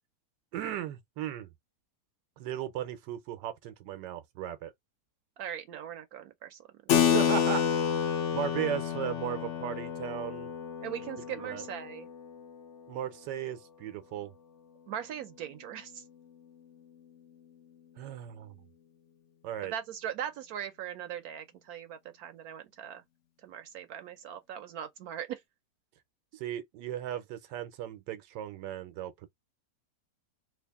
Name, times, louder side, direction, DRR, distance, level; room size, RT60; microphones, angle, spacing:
voice 1, 0.5-1.5 2.4-4.7 7.1-7.6 8.3-10.5 11.3-11.6 12.9-14.3 18.0-18.5 19.4-19.7 26.3-29.3, right 11 dB, 90° right, 1.3 m, -36 dB
voice 2, 5.4-6.6 10.8-12.1 14.9-16.0 19.7-23.0 23.4-25.4, right 9 dB, 70° right, 1.0 m, -40 dB
Keyboard (musical), 6.9-12.9, left 8 dB, 60° left, 0.8 m, -30 dB
3.3 x 2.4 x 3.4 m
omnidirectional pair, 1.8 m